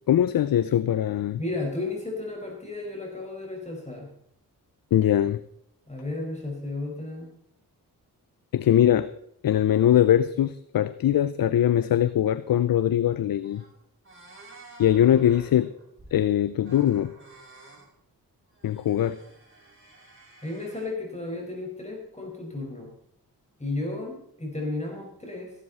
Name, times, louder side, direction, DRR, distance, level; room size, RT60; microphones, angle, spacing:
voice 1, 0.1-1.4 4.9-5.4 8.5-9.1 9.4-13.6 14.8-15.7 16.1-17.1 18.6-19.2, left 11 dB, 65° left, 15 dB, 0.7 m, -21 dB
voice 2, 1.4-4.1 5.9-7.3 20.4-22.9 23.6-25.5, left 2 dB, 20° left, 0 dB, 5.1 m, -33 dB
sound 1, 13.1-13.2 13.4-13.8 14.0-16.2 16.6-17.9 18.5-20.9, right 2 dB, 35° right, 6.7 m, -51 dB
15.0 x 12.5 x 4.2 m, 0.73 s
cardioid pair, 65°, 37 cm